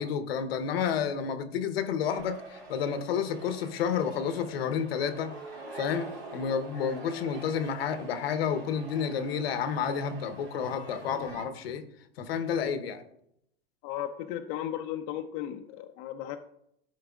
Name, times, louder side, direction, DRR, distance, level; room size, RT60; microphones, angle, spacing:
voice 1, 0.0-5.3 5.7-11.8 12.2-13.0, left 7 dB, 70° left, 10 dB, 1.0 m, -30 dB
sound 1, 2.1-11.4, right 3 dB, 80° right, 2.6 m, -46 dB
voice 2, 13.8-16.4, left 11 dB, 45° left, 6 dB, 0.6 m, -35 dB
11.5 x 4.8 x 2.4 m, 0.75 s
hypercardioid pair, 115°, 31 cm